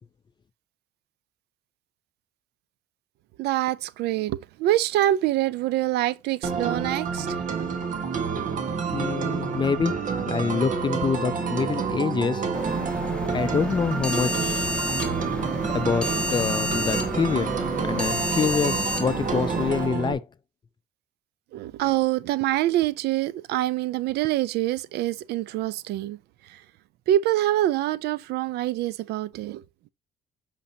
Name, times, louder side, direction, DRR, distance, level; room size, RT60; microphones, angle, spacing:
voice 1, 3.4-7.6 21.5-26.6 27.1-29.6, right 14 dB, 75° right, 0.5 m, -25 dB
sound 1, 6.4-20.1, right 5 dB, 50° right, 1.5 m, -29 dB
voice 2, 8.9-12.4 13.3-14.7 15.7-17.5 17.8-20.2, left 5 dB, 25° left, 0.5 m, -26 dB
sound 2, 12.5-19.9, left 1 dB, 5° left, 1.4 m, -30 dB
8.6 x 5.4 x 2.8 m
cardioid pair, 110°, 17 cm